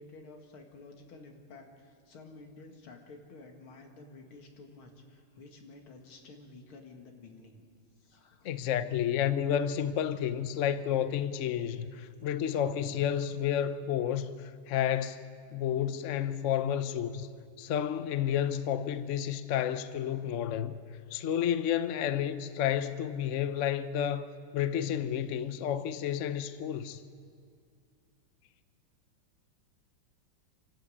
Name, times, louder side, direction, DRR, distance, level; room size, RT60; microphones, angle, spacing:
voice 1, 0.0-7.6 8.0-8.8 10.1-10.3 11.7-11.8, left 3 dB, 85° left, 2.8 m, -52 dB
voice 2, 8.4-15.2 15.5-17.3 17.6-20.8 21.1-27.0, left 9 dB, 65° left, 0.7 m, -31 dB
26.5 x 12.0 x 8.5 m
omnidirectional pair, 2.3 m